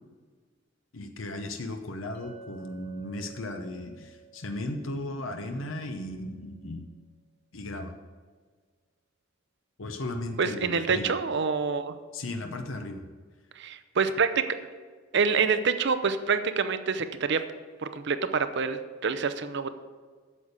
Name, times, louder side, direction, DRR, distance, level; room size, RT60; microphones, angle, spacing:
voice 1, 0.9-6.9 7.5-7.9 9.8-11.1 12.1-13.1, left 1 dB, 80° left, 5 dB, 0.9 m, -36 dB
Chink clink, 2.1-6.4, right 7 dB, 55° left, 3.2 m, -52 dB
voice 2, 10.4-11.9 13.6-14.6 15.1-17.4 17.8-19.7, right 5 dB, 60° right, 10 dB, 0.7 m, -26 dB
8.5 x 7.1 x 6.5 m, 1.5 s
head